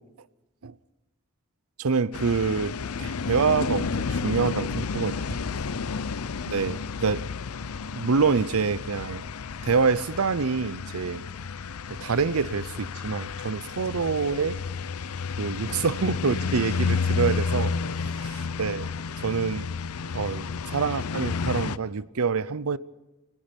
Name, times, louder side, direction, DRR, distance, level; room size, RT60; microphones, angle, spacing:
voice 1, 1.8-2.7 3.0-5.2 6.5-7.3 7.9-9.2 9.6-11.2 12.0-14.6 15.4-17.7 18.6-18.9 19.2-19.7 20.1-22.8, right 5 dB, 80° right, 0.7 m, -26 dB
sound 1, 2.1-21.8, left 5 dB, 90° left, 0.6 m, -31 dB
voice 2, 16.9-18.2, left 1 dB, 65° left, 3.5 m, -52 dB
26.5 x 19.5 x 5.3 m
head